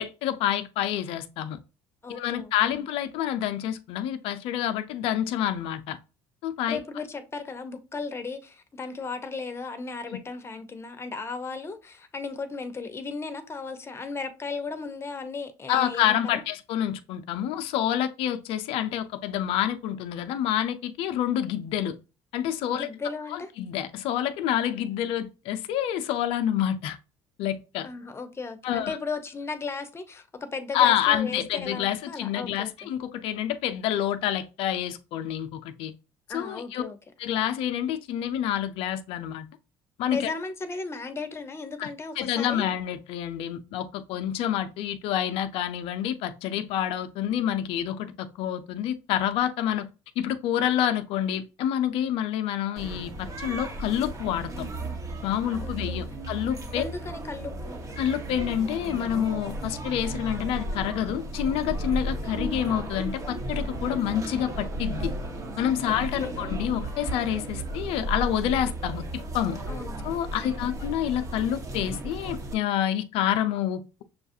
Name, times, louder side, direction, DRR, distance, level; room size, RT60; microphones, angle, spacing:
voice 1, 0.0-1.6 2.1-6.0 6.4-6.8 15.7-21.9 22.3-22.9 23.3-27.0 27.4-27.9 28.6-29.0 30.7-35.9 36.3-36.8 37.2-39.5 40.0-40.3 41.8-41.9 42.2-49.9 50.2-54.7 55.2-56.8 58.0-65.1 65.6-69.6 70.0-74.0, left 10 dB, 70° left, 0.5 m, -28 dB
voice 2, 2.0-2.7 6.7-16.4 22.7-23.5 27.8-32.9 36.3-37.0 40.1-42.7 55.6-56.1 56.7-57.8 65.9-66.5 69.7-70.5, left 4 dB, 25° left, 0.8 m, -36 dB
sound 1, 52.8-72.5, right 1 dB, 35° right, 1.1 m, -34 dB
6.5 x 2.4 x 2.7 m
supercardioid pair, 85°, 10 cm